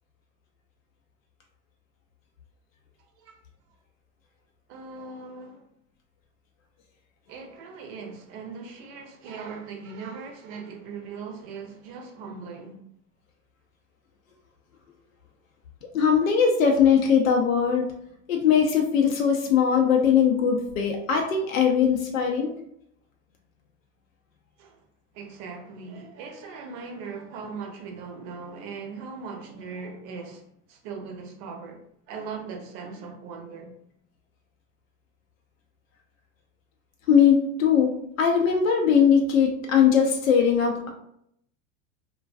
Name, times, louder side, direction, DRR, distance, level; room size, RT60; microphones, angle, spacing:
voice 1, 4.7-5.6 7.3-12.8 24.6-24.8 25.1-30.4 30.7-33.7, right 5 dB, 55° right, 0.7 m, -39 dB
voice 2, 15.9-17.9 18.3-22.5 37.1-40.9, left 7 dB, 85° left, 0.5 m, -20 dB
2.3 x 2.2 x 2.4 m
hypercardioid pair, 85°, 39 cm